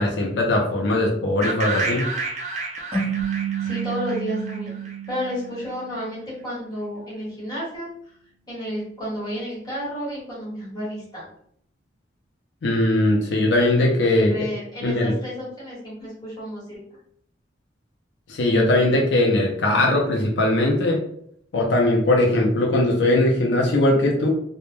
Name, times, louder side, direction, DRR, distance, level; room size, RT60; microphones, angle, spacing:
voice 1, 0.0-2.1 12.6-14.3 14.8-15.1 18.3-21.0 21.5-24.3, left 1 dB, 80° left, -1 dB, 0.5 m, -20 dB
sound 1, 1.4-5.3, right 3 dB, 40° right, 0.4 m, -30 dB
sound 2, 2.9-6.1, right 7 dB, 15° right, 0.9 m, -29 dB
voice 2, 3.3-4.7 5.1-7.9 8.5-11.3 14.1-16.8, equal, 20° left, -7 dB, 1.1 m, -31 dB
2.1 x 2.0 x 3.0 m, 0.69 s
head